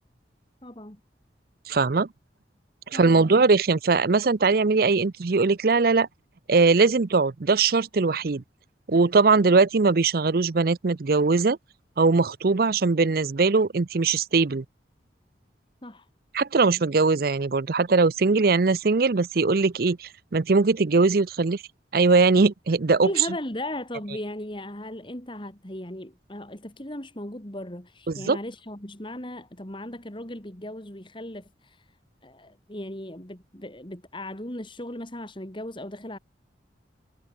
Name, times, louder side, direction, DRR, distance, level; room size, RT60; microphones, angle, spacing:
voice 1, 0.6-1.0 2.9-3.5 15.8-16.1 23.0-31.9 32.2-36.2, left 1 dB, 25° left, 2.9 m, -37 dB
voice 2, 1.7-2.1 2.9-6.1 6.5-8.4 8.9-11.6 12.0-14.6 16.3-21.6 21.9-23.1 28.1-28.4, right 4 dB, 55° right, 0.6 m, -21 dB
head